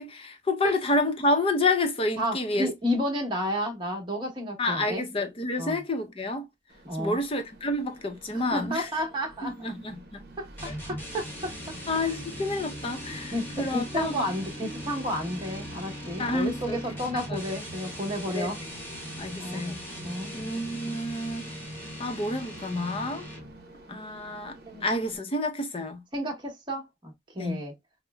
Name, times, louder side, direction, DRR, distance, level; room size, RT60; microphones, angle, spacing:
voice 1, 0.0-2.7 4.6-6.5 7.0-8.9 9.4-10.2 11.9-14.3 16.2-16.8 17.1-17.4 18.3-18.5 19.2-19.8 20.3-21.5 22.0-23.3 23.9-26.0 27.4-27.6, left 2 dB, 30° left, 0.7 m, -29 dB
voice 2, 2.2-5.0 5.6-5.8 6.8-7.2 8.3-9.5 10.4-10.5 10.8-12.2 13.3-18.6 19.4-19.6 20.0-20.3 23.9-24.0 24.7-24.8 26.1-27.7, equal, 25° right, 1.3 m, -32 dB
Train, 6.7-25.2, right 1 dB, 55° right, 0.9 m, -47 dB
sound 1, 10.6-23.7, equal, 10° left, 1.2 m, -40 dB
5.3 x 2.1 x 2.2 m
head